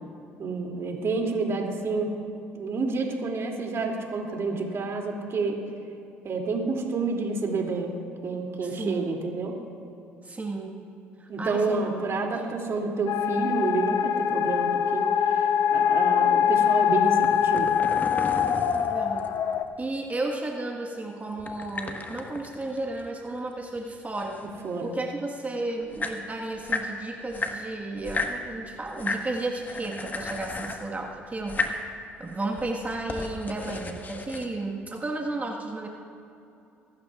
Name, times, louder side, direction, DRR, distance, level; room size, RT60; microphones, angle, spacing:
voice 1, 0.4-2.1 2.5-5.6 6.2-7.9 8.2-9.6 11.3-17.8 24.6-24.9, right 4 dB, 50° right, 1 dB, 2.6 m, -29 dB
voice 2, 8.6-9.1 10.2-10.8 11.2-12.0 18.7-19.3 19.8-24.4 24.8-31.6 32.2-35.9, right 2 dB, 25° right, 1 dB, 1.5 m, -33 dB
sound 1, 13.1-19.6, left 8 dB, 60° left, 0.8 m, -23 dB
sound 2, 17.1-19.6 21.4-23.5 23.7-25.0 25.6-25.7 25.8-26.9 27.3-28.4 28.9-29.3 29.6-30.9 31.4-31.8 32.3-34.5, left 3 dB, 30° left, 1.4 m, -34 dB
24.5 x 12.5 x 2.4 m, 2.7 s
hypercardioid pair, 60°, 6 cm